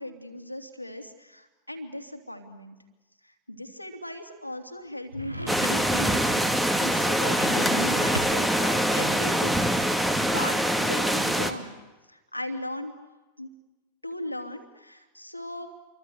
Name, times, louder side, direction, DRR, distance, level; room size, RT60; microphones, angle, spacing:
voice 1, 0.0-2.8 3.2-11.7 12.1-12.9 13.4-13.5 14.0-15.7, left 1 dB, 90° left, 4 dB, 3.0 m, -38 dB
sound 1, 5.1-6.0 7.1-8.6, right 1 dB, 85° right, 2.0 m, -37 dB
sound 2, 5.5-11.5, equal, 5° right, 2.1 m, -24 dB
29.0 x 24.0 x 8.0 m, 1.2 s
figure-of-eight pair, 90°, 0 cm